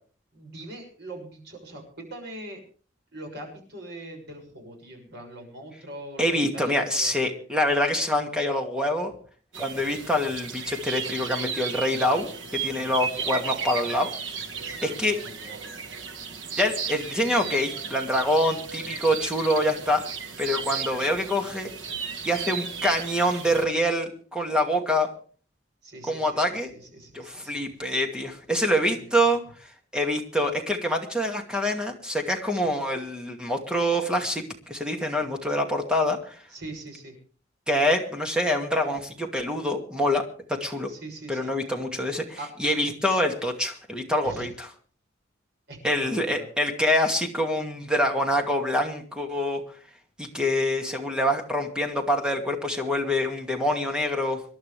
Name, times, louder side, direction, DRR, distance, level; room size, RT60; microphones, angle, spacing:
voice 1, 0.3-2.6 3.1-7.1 13.1-14.0 14.6-15.7 19.0-19.1 25.8-27.6 28.8-29.3 36.5-37.1 40.9-41.5 42.4-42.5 44.2-44.5 45.7-46.5, right 1 dB, 60° right, 2 dB, 6.7 m, -42 dB
voice 2, 6.2-9.1 9.6-14.1 14.8-15.2 16.6-20.0 20.4-21.7 22.2-25.1 26.0-26.7 27.1-29.4 29.9-36.4 37.7-40.9 41.3-44.7 45.8-49.6 50.2-54.4, left 1 dB, 5° right, 3 dB, 2.3 m, -25 dB
sound 1, 9.5-23.7, right 6 dB, 80° right, 1.6 m, -35 dB
26.5 x 11.5 x 3.4 m, 0.42 s
head